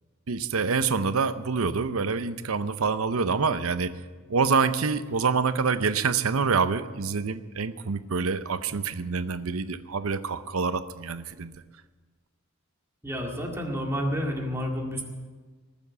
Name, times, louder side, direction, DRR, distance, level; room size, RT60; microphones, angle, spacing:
voice 1, 0.3-4.0 4.3-11.5, right 5 dB, 85° right, 12 dB, 0.7 m, -26 dB
voice 2, 13.0-15.0, equal, 10° right, 0 dB, 2.1 m, -30 dB
19.5 x 7.2 x 8.2 m, 1.4 s
head